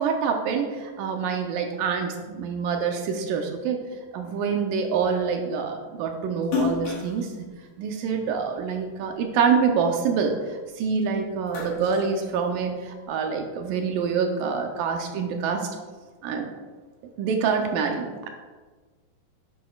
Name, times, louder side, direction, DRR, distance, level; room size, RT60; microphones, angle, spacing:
voice 1, 0.0-3.8 4.1-7.5 7.8-15.7 16.2-16.5 17.0-18.3, right 6 dB, 80° right, 4 dB, 2.2 m, -26 dB
Splash splatter, 6.4-9.0 9.5-10.9 11.2-13.0, left 5 dB, 70° left, 3.3 m, -32 dB
10.5 x 8.0 x 2.3 m, 1.4 s
omnidirectional pair, 4.2 m